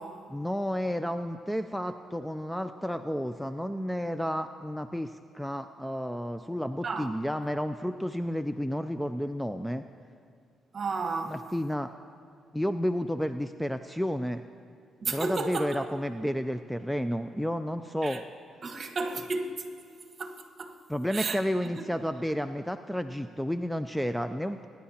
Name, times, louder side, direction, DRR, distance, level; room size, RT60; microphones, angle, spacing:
voice 1, 0.3-9.8 11.3-11.9 12.5-14.4 15.1-18.2 20.9-24.7, equal, ahead, 0.3 m, -31 dB
voice 2, 10.7-11.4 15.0-15.9 18.0-18.2 18.6-19.5 20.2-20.7 21.1-21.8, right 3 dB, 40° right, 1.3 m, -33 dB
24.0 x 10.5 x 2.9 m
cardioid pair, 90°, 0 cm